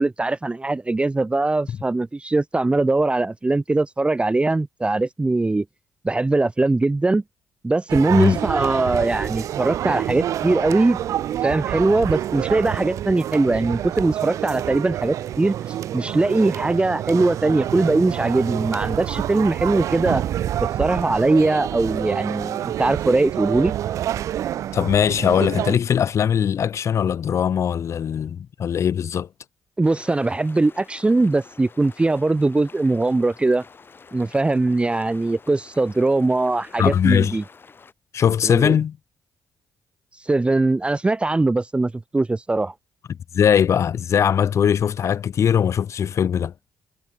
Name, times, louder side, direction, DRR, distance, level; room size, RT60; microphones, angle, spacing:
voice 1, 0.0-5.6 6.0-7.2 7.6-11.0 11.4-15.6 15.9-20.2 20.8-23.7 29.8-33.6 34.1-37.4 38.4-38.7 40.2-42.7, right 2 dB, 20° right, 0.6 m, -21 dB
sound 1, 7.9-25.7, right 11 dB, 70° right, 1.4 m, -27 dB
voice 2, 24.7-29.3 36.8-37.4 38.1-39.0 43.3-46.5, left 8 dB, 60° left, 3.3 m, -20 dB
sound 2, 29.8-37.9, left 5 dB, 40° left, 6.4 m, -48 dB
supercardioid pair, 55°, 6 cm